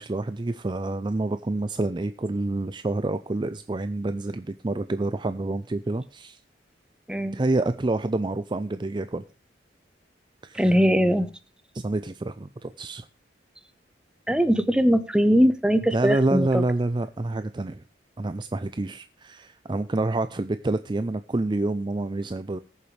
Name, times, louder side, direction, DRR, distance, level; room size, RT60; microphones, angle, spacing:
voice 1, 0.0-6.4 7.3-9.2 10.4-10.8 11.7-13.1 15.9-17.8 18.2-22.6, right 2 dB, 25° right, 11 dB, 0.4 m, -28 dB
voice 2, 7.1-7.4 10.5-11.3 14.3-16.6, equal, 5° right, 10 dB, 0.9 m, -21 dB
19.5 x 7.0 x 3.2 m, 0.32 s
head